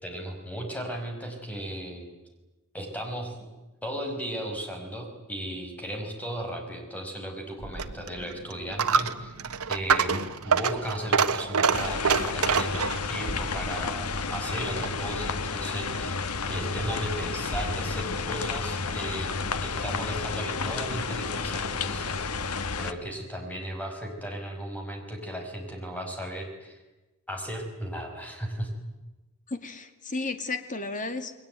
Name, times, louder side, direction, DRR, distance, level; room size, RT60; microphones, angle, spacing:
voice 1, 0.0-2.1 2.7-3.4 3.8-9.3 9.7-22.2 22.8-26.8 27.3-28.7, equal, 5° left, 3 dB, 5.5 m, -36 dB
Coin (dropping), 7.6-15.1, right 5 dB, 75° right, 1.4 m, -27 dB
sound 1, 11.7-22.9, left 4 dB, 85° left, 1.4 m, -31 dB
voice 2, 29.5-31.3, left 3 dB, 35° left, 8 dB, 2.4 m, -33 dB
30.0 x 21.5 x 9.2 m, 1.1 s
head